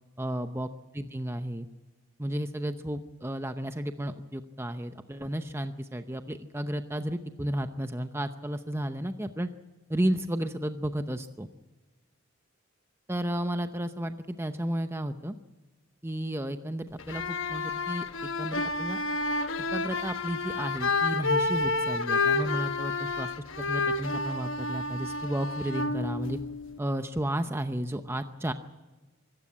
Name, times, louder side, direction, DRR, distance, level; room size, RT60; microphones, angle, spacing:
voice 1, 0.2-0.7 0.9-1.7 2.2-9.5 9.9-11.5 13.1-15.3 16.0-19.0 19.7-23.3 23.6-26.4 26.8-28.5, right 1 dB, 10° right, 8 dB, 0.7 m, -33 dB
sound 1, 17.0-26.8, left 3 dB, 60° left, 1.2 m, -30 dB
25.0 x 14.5 x 8.7 m, 1.2 s
head